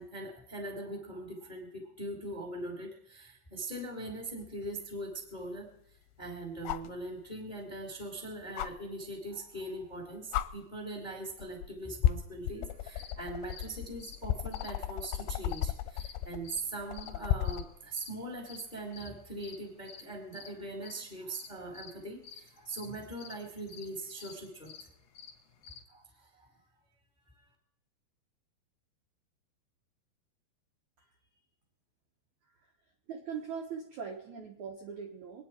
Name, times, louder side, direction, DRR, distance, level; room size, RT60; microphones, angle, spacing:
voice 1, 0.0-5.7 6.2-24.7 25.9-26.5 27.4-27.5, right 2 dB, 15° left, 1 dB, 1.4 m, -41 dB
sound 1, 4.4-4.5 6.7-7.0 8.6-8.7 9.8-10.0 10.3-10.5 11.4-11.7 12.0-17.7 19.4-19.5, left 12 dB, 80° left, 2.7 m, -33 dB
sound 2, 12.7-25.8, left 6 dB, 50° left, 2.3 m, -52 dB
voice 2, 33.1-35.4, right 6 dB, 70° right, 1 dB, 1.9 m, -41 dB
24.5 x 9.6 x 4.4 m, 0.80 s
omnidirectional pair, 5.0 m